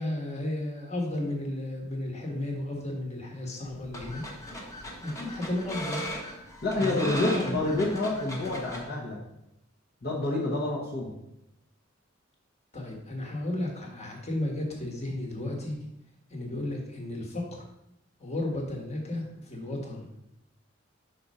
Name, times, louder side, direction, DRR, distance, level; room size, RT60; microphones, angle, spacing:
voice 1, 0.0-4.2 5.0-6.0 6.8-7.6 12.7-15.8 16.3-17.6 18.2-20.1, left 1 dB, 35° left, 0 dB, 1.4 m, -33 dB
sound 1, 3.6-8.8, equal, 15° left, 1.0 m, -38 dB
voice 2, 6.6-9.2 10.0-11.1, left 2 dB, 50° left, -3 dB, 1.1 m, -28 dB
5.4 x 4.3 x 5.4 m, 0.85 s
head